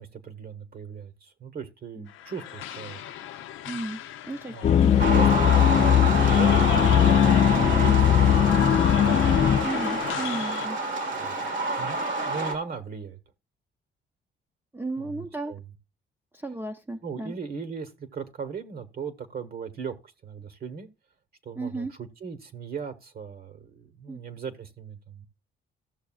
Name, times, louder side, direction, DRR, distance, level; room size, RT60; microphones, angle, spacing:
voice 1, 0.0-3.0 4.5-7.0 7.5-8.3 11.1-11.3 11.8-12.0 12.2-13.2 15.0-15.6 17.0-20.9 21.4-25.3, right 6 dB, 50° right, 1.2 m, -38 dB
sound 1, 2.1-10.7, left 11 dB, 85° left, 0.6 m, -34 dB
voice 2, 3.7-4.0 4.3-5.3 5.7-5.9 7.6-7.9 9.6-10.8 11.2-11.7 14.7-15.5 16.3-17.3 21.6-21.9 24.1-24.2, right 2 dB, 10° right, 0.6 m, -35 dB
sound 2, 4.6-10.1, left 10 dB, 35° left, 0.4 m, -20 dB
sound 3, 5.0-12.5, right 2 dB, 70° right, 1.6 m, -28 dB
15.0 x 6.6 x 2.4 m
cardioid pair, 90°, 20 cm